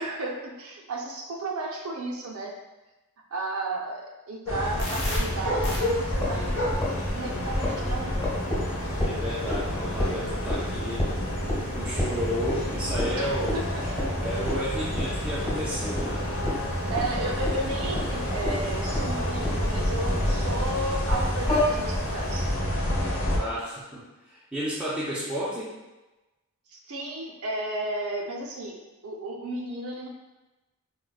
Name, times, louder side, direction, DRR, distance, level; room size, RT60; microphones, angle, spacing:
voice 1, 0.0-2.6 3.3-6.5 7.1-8.3 13.2-13.3 13.5-14.1 16.9-22.5 26.7-30.1, right 2 dB, 70° right, 1 dB, 0.5 m, -33 dB
sound 1, 4.5-23.4, equal, 65° left, 0.8 m, -29 dB
sound 2, 4.8-5.2 5.6-5.8 6.1-7.1 7.5-20.6 21.1-21.6, left 1 dB, 20° left, 0.9 m, -32 dB
voice 2, 9.0-11.1 11.7-13.5 14.2-16.2 23.3-25.7, equal, 5° right, -8 dB, 0.4 m, -32 dB
4.7 x 2.1 x 2.2 m, 1.1 s
head